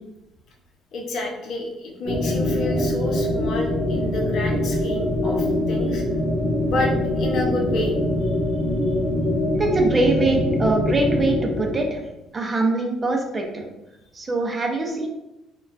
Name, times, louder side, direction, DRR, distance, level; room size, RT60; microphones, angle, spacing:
voice 1, 0.9-6.0 6.6-8.0 8.2-8.3, left 2 dB, 60° left, 1 dB, 0.7 m, -29 dB
sound 1, 2.0-12.0, left 1 dB, 35° left, 1.3 m, -23 dB
voice 2, 9.5-12.0 12.3-13.7 14.1-15.1, right 2 dB, 25° right, 1 dB, 0.6 m, -23 dB
4.2 x 2.3 x 2.6 m, 0.93 s
cardioid pair, 115°, 0 cm